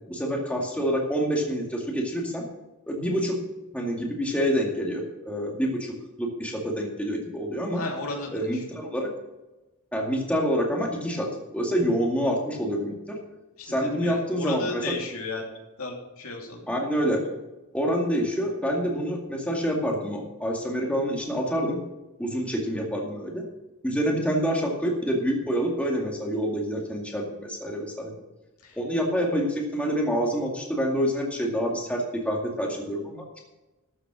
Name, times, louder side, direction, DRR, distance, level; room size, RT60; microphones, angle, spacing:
voice 1, 0.1-2.4 2.9-3.4 3.7-5.9 6.2-7.8 8.3-9.1 9.9-13.2 13.7-14.9 16.7-17.3 17.7-21.8 22.2-23.4 23.8-28.1 28.8-33.4, equal, 5° left, -1 dB, 2.2 m, -27 dB
voice 2, 7.7-8.6 13.6-13.7 14.0-15.5 15.8-16.6 28.6-28.8, left 3 dB, 70° left, 0 dB, 2.8 m, -34 dB
13.0 x 7.8 x 6.2 m, 1.0 s
head